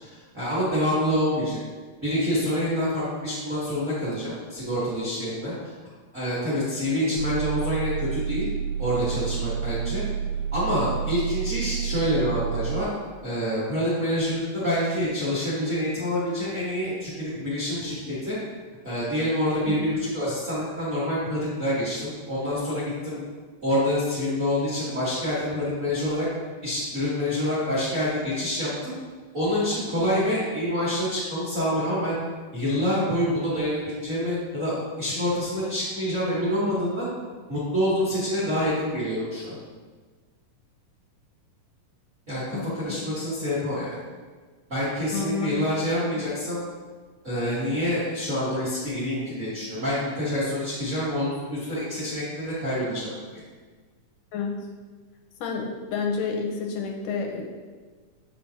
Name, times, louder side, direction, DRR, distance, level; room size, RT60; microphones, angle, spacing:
voice 1, 0.0-1.6 2.0-5.5 6.1-8.5 8.8-10.0 10.5-12.9 13.2-18.4 18.8-23.2 23.6-26.3 26.6-28.9 29.3-32.1 32.5-37.1 37.5-39.5 42.3-44.0 44.7-46.6 47.2-53.4, equal, 40° right, -10 dB, 1.0 m, -27 dB
sound 1, 7.2-12.8, right 7 dB, 65° right, 2.1 m, -29 dB
voice 2, 19.6-20.0 42.5-43.0 45.1-45.6 46.0-46.2 54.3-54.5 55.4-57.4, left 5 dB, 80° left, 1 dB, 2.1 m, -30 dB
7.0 x 5.6 x 2.8 m, 1.4 s
omnidirectional pair, 3.8 m